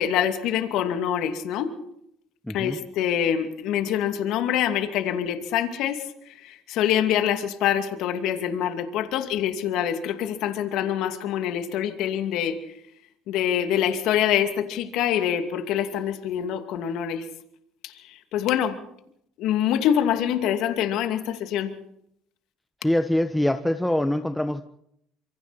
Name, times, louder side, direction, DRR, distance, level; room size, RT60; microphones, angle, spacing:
voice 1, 0.0-1.8 2.5-12.6 13.3-17.3 17.8-18.8 19.4-21.7, left 10 dB, 70° left, 7 dB, 2.5 m, -25 dB
voice 2, 2.5-2.8 22.8-24.6, left 1 dB, 5° left, 8 dB, 1.3 m, -24 dB
27.0 x 24.5 x 4.3 m, 0.74 s
supercardioid pair, 80°, 0 cm